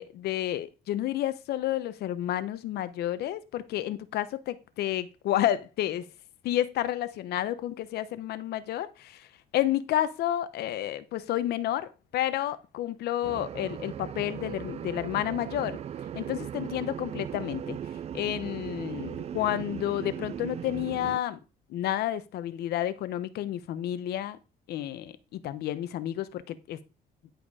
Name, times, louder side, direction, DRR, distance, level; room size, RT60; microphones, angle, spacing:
voice 1, 0.0-6.0 6.4-9.3 9.5-15.8 16.1-17.8 18.1-21.4 21.7-24.4 24.7-26.8, left 12 dB, 75° left, 0.9 m, -30 dB
sound 1, 13.2-21.2, right 9 dB, 40° right, 0.4 m, -38 dB
10.5 x 5.0 x 4.8 m
cardioid pair, 110°, 17 cm